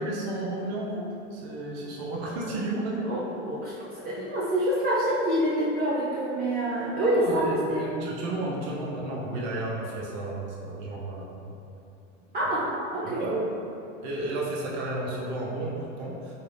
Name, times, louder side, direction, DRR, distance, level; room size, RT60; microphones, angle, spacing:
voice 1, 0.0-3.1 7.0-11.5 13.0-13.5 14.0-16.3, right 2 dB, 60° right, -4 dB, 0.9 m, -32 dB
voice 2, 3.0-7.9 12.3-13.2, right 1 dB, 25° right, -9 dB, 0.6 m, -27 dB
4.7 x 2.3 x 3.3 m, 2.7 s
supercardioid pair, 115°, 38 cm